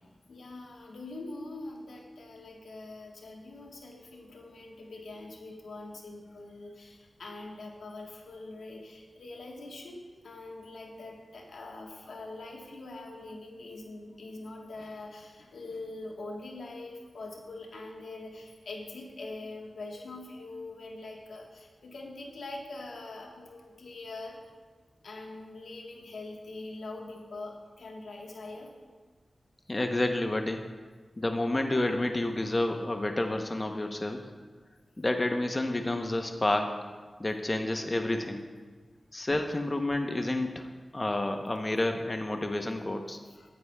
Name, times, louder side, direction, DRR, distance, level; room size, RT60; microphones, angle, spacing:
voice 1, 0.0-24.4 25.0-28.7, left 2 dB, 90° left, 0 dB, 1.2 m, -43 dB
voice 2, 29.7-30.6 31.2-34.3 35.0-36.8 37.2-38.4 39.1-40.7 40.9-43.2, left 1 dB, 35° left, 5 dB, 0.7 m, -29 dB
14.0 x 9.4 x 2.2 m, 1.4 s
cardioid pair, 45°, 0 cm